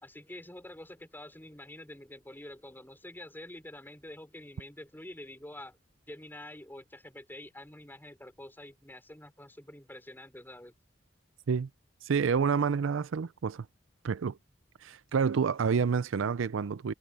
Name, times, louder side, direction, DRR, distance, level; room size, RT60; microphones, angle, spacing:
voice 1, 0.0-5.8 6.1-10.7, left 1 dB, 10° left, 4.8 m, -47 dB
voice 2, 12.0-13.7 14.0-14.4 14.8-16.9, right 6 dB, 85° right, 0.5 m, -28 dB
head